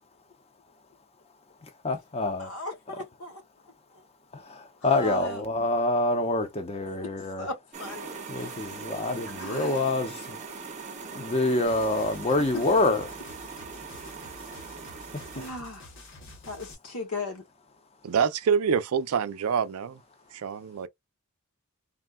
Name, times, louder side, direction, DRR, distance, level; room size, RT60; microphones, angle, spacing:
voice 1, 1.8-2.5 4.8-7.5 8.3-10.4 11.1-13.1, left 2 dB, 30° left, 0.6 m, -26 dB
voice 2, 2.4-3.4 3.9-4.0 4.8-5.4 6.4-6.5 7.0-7.1 7.4-8.7 9.4-9.9 12.5-12.6 14.9-15.0 15.3-15.9 16.4-17.4, left 2 dB, 85° left, 1.0 m, -38 dB
sound 1, 7.7-15.5, right 5 dB, 35° right, 0.6 m, -41 dB
sound 2, 11.7-16.7, left 2 dB, 60° left, 1.0 m, -49 dB
voice 3, 18.0-20.0 20.3-20.9, right 6 dB, 80° right, 0.4 m, -26 dB
3.5 x 2.2 x 2.2 m
head